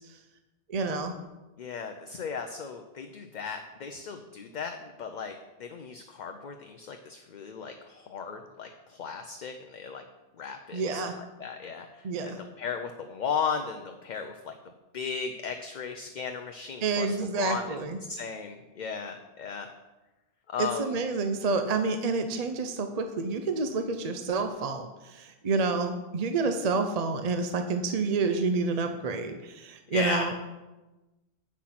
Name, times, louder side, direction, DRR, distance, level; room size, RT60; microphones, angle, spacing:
voice 1, 0.7-1.1 10.7-11.1 12.0-12.4 16.8-18.0 20.6-30.4, right 4 dB, 45° right, 7 dB, 0.6 m, -29 dB
voice 2, 1.6-10.0 10.4-11.1 11.4-14.6 14.9-17.8 18.1-19.7 20.5-21.0 29.9-30.3, left 6 dB, 50° left, 6 dB, 0.6 m, -36 dB
8.4 x 6.2 x 5.8 m, 1.1 s
omnidirectional pair, 1.1 m